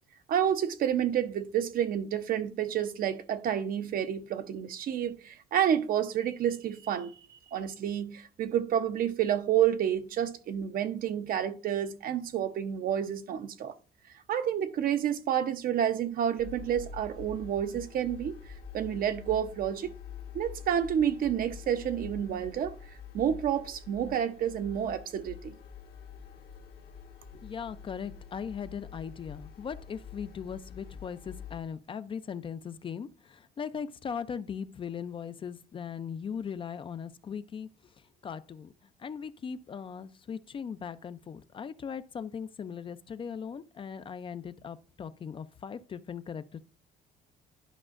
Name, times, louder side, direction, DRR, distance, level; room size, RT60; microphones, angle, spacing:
voice 1, 0.3-7.1 7.5-13.7 14.3-18.4 18.7-19.9 20.3-25.5, right 9 dB, 60° right, 0.7 m, -29 dB
sound 1, 16.4-31.6, left 7 dB, 65° left, 1.3 m, -46 dB
voice 2, 27.3-37.7 38.2-38.7 39.0-46.6, left 7 dB, 30° left, 0.4 m, -39 dB
11.0 x 4.9 x 2.5 m
cardioid pair, 110°, 17 cm